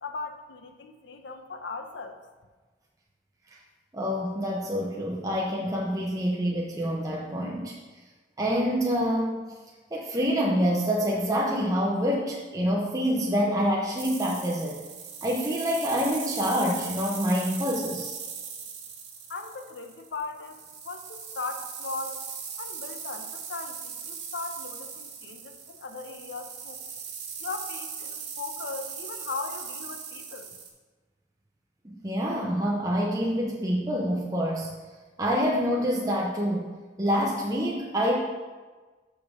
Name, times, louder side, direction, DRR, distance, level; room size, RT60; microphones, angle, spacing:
voice 1, 0.0-2.2 19.3-22.2 22.6-26.8 27.4-30.5, left 4 dB, 90° left, 6 dB, 0.7 m, -38 dB
voice 2, 3.9-7.8 8.4-9.5 9.9-14.8 15.2-18.2 31.8-34.7 35.2-36.7 37.0-38.2, equal, 20° right, -3 dB, 0.7 m, -26 dB
sound 1, 14.0-30.7, right 6 dB, 80° right, 1.3 m, -39 dB
6.8 x 5.3 x 4.7 m, 1.3 s
head